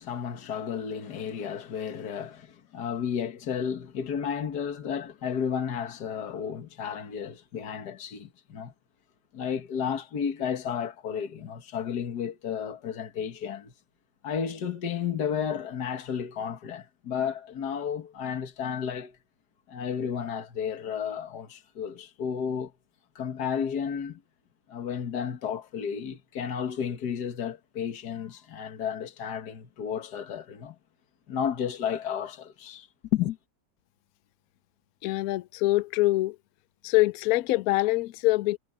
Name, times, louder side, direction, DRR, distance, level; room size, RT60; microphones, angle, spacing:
voice 1, 0.0-8.7 9.3-13.7 14.2-19.2 19.7-22.7 23.2-24.2 24.7-30.8 31.3-33.4, left 7 dB, 60° left, 2.1 m, -32 dB
voice 2, 35.0-36.4 36.8-38.6, left 19 dB, 80° left, 0.8 m, -24 dB
omnidirectional pair, 2.1 m